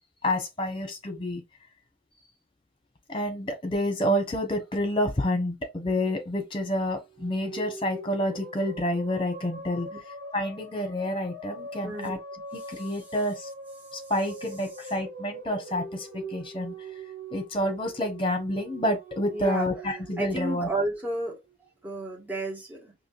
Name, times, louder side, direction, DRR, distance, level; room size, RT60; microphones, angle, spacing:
voice 1, 0.2-1.4 3.1-9.9 10.3-12.2 12.5-13.5 13.9-16.9 17.3-20.7, left 1 dB, 25° left, 1.3 m, -29 dB
sound 1, 7.1-21.5, right 2 dB, 60° right, 1.2 m, -43 dB
voice 2, 11.8-12.2 19.3-19.7 20.2-21.4 21.8-22.9, right 2 dB, 10° right, 1.7 m, -31 dB
5.0 x 2.9 x 2.6 m
head